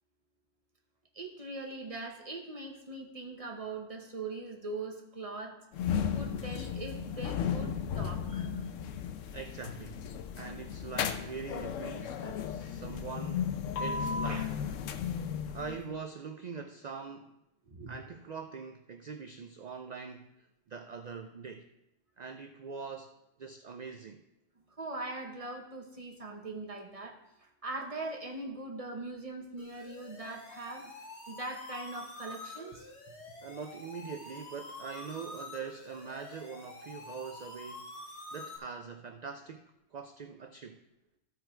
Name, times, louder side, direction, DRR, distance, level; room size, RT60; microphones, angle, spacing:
voice 1, 1.1-5.6 6.1-8.6 14.3-14.5 17.7-18.0 24.8-30.8 31.3-32.9, right 2 dB, 30° right, 2 dB, 1.1 m, -41 dB
sound 1, 5.7-15.9, left 7 dB, 80° left, 1.0 m, -35 dB
voice 2, 9.3-10.0 10.4-13.5 13.8-14.5 15.5-17.4 17.9-21.7 22.2-23.1 23.4-24.2 30.8-30.9 33.4-37.9 38.3-40.8, right 5 dB, 60° right, 6 dB, 0.4 m, -43 dB
sound 2, 29.6-38.6, left 2 dB, 60° left, 1.6 m, -47 dB
14.5 x 4.9 x 4.5 m, 0.84 s
omnidirectional pair, 1.3 m